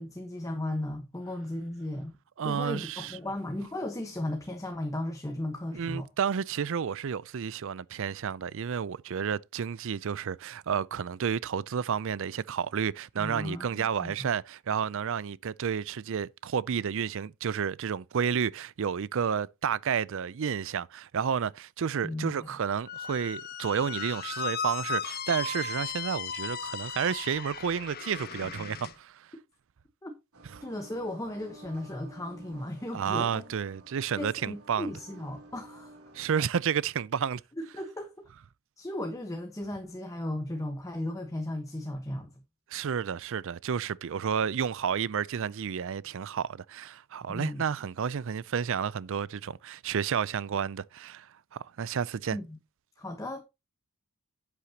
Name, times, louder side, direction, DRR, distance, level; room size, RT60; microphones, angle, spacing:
voice 1, 0.0-2.1 2.4-6.1 13.2-14.3 22.0-22.5 30.0-30.2 30.6-33.4 34.2-36.0 37.6-38.3 38.8-42.3 47.3-47.6 52.3-52.6 53.0-53.4, left 1 dB, 15° left, 1.1 m, -36 dB
voice 2, 2.4-3.2 5.7-29.3 32.9-34.9 36.1-37.4 42.7-52.4, right 7 dB, 60° right, 0.4 m, -31 dB
Squeak, 22.9-28.9, left 6 dB, 45° left, 1.2 m, -36 dB
sound 1, 30.3-36.4, right 1 dB, 80° right, 3.2 m, -52 dB
10.5 x 8.4 x 2.8 m
head